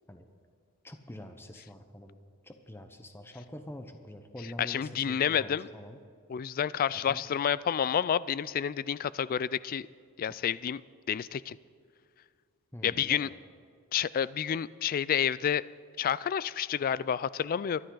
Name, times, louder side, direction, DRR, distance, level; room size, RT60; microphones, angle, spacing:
voice 1, 0.8-2.2 2.4-6.0 7.1-7.2 10.3-10.4 12.7-13.4, left 1 dB, 10° left, 0.8 m, -45 dB
voice 2, 4.6-5.7 6.3-9.9 10.2-10.8 11.1-11.6 12.8-13.3 13.9-15.7 16.0-17.8, left 8 dB, 40° left, 0.3 m, -29 dB
23.5 x 11.5 x 3.9 m
head